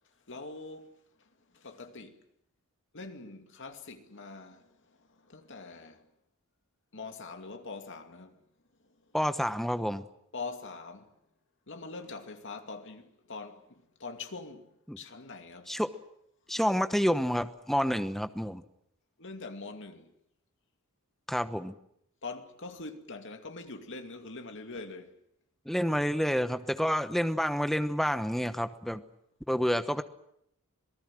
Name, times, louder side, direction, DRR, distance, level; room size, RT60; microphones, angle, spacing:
voice 1, 0.3-2.2 2.9-6.1 6.9-8.4 8.8-9.0 10.3-11.1 11.7-15.8 19.2-20.1 22.2-25.2, left 3 dB, 55° left, 2.4 m, -44 dB
voice 2, 9.1-10.0 14.9-15.0 15.7-15.9 16.5-18.6 21.3-21.7 25.7-29.0 29.5-30.0, equal, ahead, 1.0 m, -29 dB
27.0 x 19.0 x 7.6 m
head